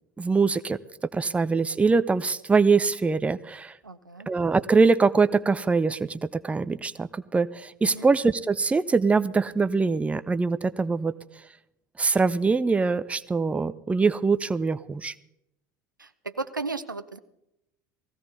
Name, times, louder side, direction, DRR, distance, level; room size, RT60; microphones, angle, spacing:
voice 1, 0.2-0.8 1.1-3.8 4.3-11.1 12.0-15.1, right 4 dB, 10° right, 13 dB, 0.6 m, -23 dB
voice 2, 3.8-4.3 7.8-8.1 16.0-17.2, right 3 dB, 85° right, 11 dB, 0.7 m, -35 dB
18.5 x 16.0 x 4.1 m, 0.83 s
figure-of-eight pair, 70°, 10 cm